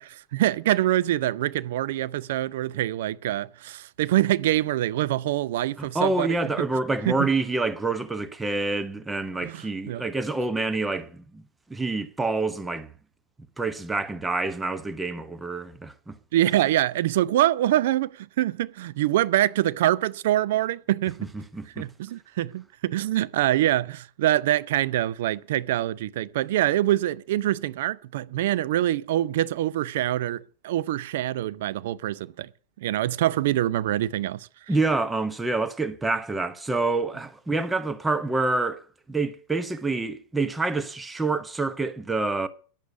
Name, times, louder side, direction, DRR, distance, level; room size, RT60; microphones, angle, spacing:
voice 1, 0.0-6.7 7.1-7.3 9.4-10.0 16.3-21.3 21.8-32.5 32.8-34.5, right 14 dB, 55° right, 0.5 m, -25 dB
voice 2, 5.8-11.4 11.7-12.9 13.6-16.2 21.3-21.9 34.7-38.8 39.1-42.5, right 3 dB, 10° right, 1.0 m, -27 dB
10.5 x 8.0 x 8.2 m
figure-of-eight pair, 90°, 0 cm